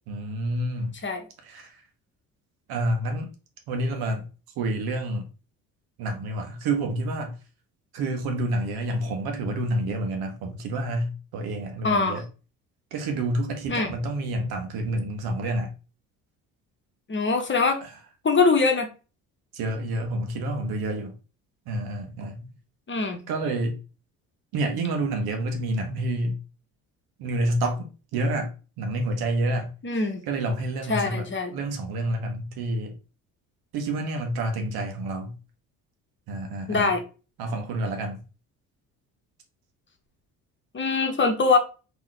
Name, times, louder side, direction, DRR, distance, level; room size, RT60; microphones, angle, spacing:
voice 1, 0.1-0.9 1.4-1.7 2.7-3.3 3.7-4.2 4.6-5.3 6.0-7.3 7.9-12.2 12.9-15.7 19.5-21.1 21.7-22.5 23.3-23.8 24.5-26.4 27.2-29.7 30.3-31.3 31.5-32.9 33.7-35.4 36.3-36.9 37.4-38.2, right 1 dB, 70° right, 1.1 m, -28 dB
voice 2, 11.8-12.2 13.7-13.9 17.1-17.8 18.2-18.9 22.9-23.2 29.8-30.2 30.9-31.5 36.7-37.0 40.7-41.6, left 4 dB, 30° left, 1.0 m, -23 dB
3.7 x 3.0 x 3.0 m
hypercardioid pair, 60°, 38 cm